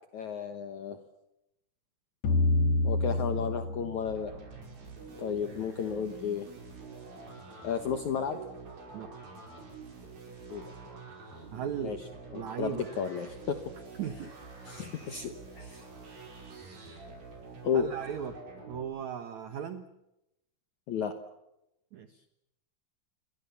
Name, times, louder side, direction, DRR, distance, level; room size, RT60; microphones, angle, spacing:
voice 1, 0.1-1.0 2.8-4.3 5.2-6.5 7.6-8.4 10.5-10.6 11.8-12.0 12.3-13.6 14.7-15.9 17.6-17.9 20.9-21.1, left 7 dB, 75° left, 7 dB, 1.7 m, -33 dB
sound 1, 2.2-5.3, left 2 dB, 55° left, 2.1 m, -29 dB
sound 2, 4.0-18.8, right 4 dB, 50° right, 6.9 m, -47 dB
voice 2, 11.5-12.0 12.3-12.9 14.0-14.3 17.7-18.3 18.7-19.9 21.9-22.2, right 8 dB, 85° right, 9 dB, 1.6 m, -37 dB
28.5 x 23.0 x 7.1 m, 0.86 s
omnidirectional pair, 5.2 m